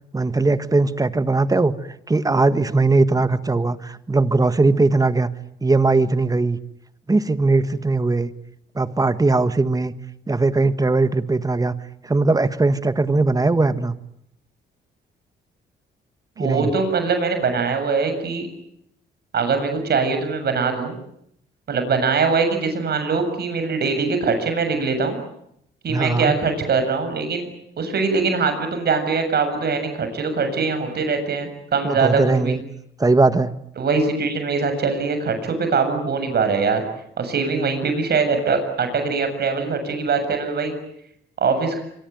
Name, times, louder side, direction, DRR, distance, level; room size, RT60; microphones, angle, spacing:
voice 1, 0.1-1.7 2.1-5.3 5.6-6.6 7.1-8.3 8.7-9.9 10.3-11.7 12.0-13.9 16.4-16.7 25.9-26.3 31.8-32.6 33.0-33.5, right 3 dB, 20° right, 13 dB, 1.6 m, -19 dB
voice 2, 16.4-18.5 19.3-21.0 21.7-25.2 25.8-27.5 27.8-32.6 33.8-36.8 37.2-40.7 41.4-41.8, right 4 dB, 55° right, 7 dB, 7.3 m, -22 dB
25.5 x 24.0 x 9.4 m, 0.75 s
cardioid pair, 90°, 20 cm